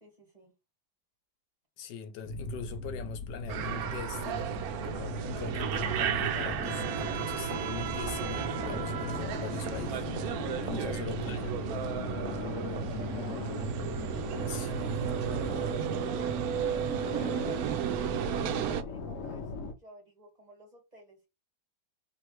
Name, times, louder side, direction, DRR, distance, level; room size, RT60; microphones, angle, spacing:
voice 1, 0.0-0.5 10.6-11.5 12.3-13.7 14.6-21.3, right 1 dB, 25° right, 1.6 m, -52 dB
voice 2, 1.8-4.5 4.8-11.6 14.5-15.3, left 7 dB, 80° left, 1.3 m, -42 dB
sound 1, 2.2-19.7, left 3 dB, 60° left, 1.0 m, -38 dB
sound 2, 3.5-18.8, right 9 dB, 70° right, 0.9 m, -33 dB
3.2 x 3.1 x 4.5 m
omnidirectional pair, 1.8 m